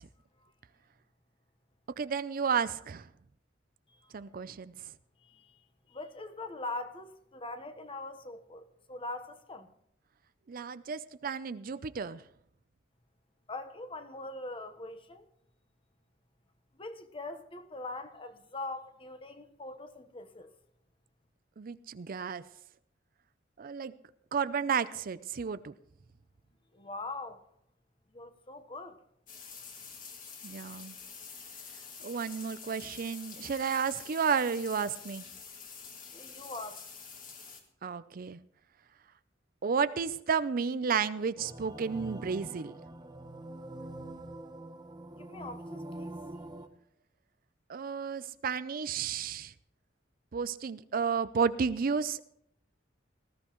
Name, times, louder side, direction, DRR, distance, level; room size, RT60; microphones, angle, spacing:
voice 1, 2.0-3.1 4.1-4.7 10.5-12.2 21.6-22.4 23.6-23.9 24.3-25.7 30.4-31.0 32.0-35.2 37.8-38.4 39.6-42.7 47.7-49.5 50.3-52.2, right 6 dB, 50° right, 0.5 m, -32 dB
voice 2, 5.2-5.6 5.9-9.7 13.5-15.3 16.8-20.5 26.7-27.4 28.1-29.0 36.1-36.8 45.1-46.2, left 2 dB, 30° left, 1.1 m, -42 dB
sound 1, 29.3-37.6, left 6 dB, 45° left, 2.3 m, -47 dB
sound 2, 41.4-46.7, right 1 dB, 20° right, 0.9 m, -44 dB
19.5 x 13.5 x 3.0 m
head